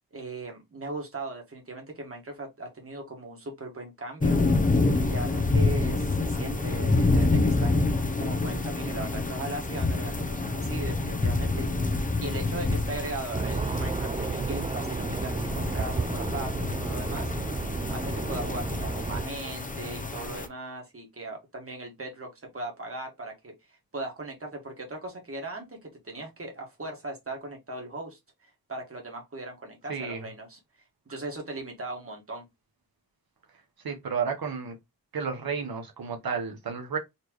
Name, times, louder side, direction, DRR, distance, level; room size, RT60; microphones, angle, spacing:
voice 1, 0.0-4.4 4.9-7.9 8.2-17.3 17.9-28.2 28.7-30.6 31.1-32.4, right 2 dB, 40° right, 1.6 m, -38 dB
sound 1, 4.2-20.5, left 3 dB, 25° left, 0.7 m, -27 dB
sound 2, 13.3-19.3, right 4 dB, 20° right, 0.3 m, -32 dB
voice 2, 29.9-30.2 33.8-34.8 35.1-37.0, right 6 dB, 85° right, 0.9 m, -32 dB
4.2 x 3.2 x 3.0 m
wide cardioid pair, 100°, 35 cm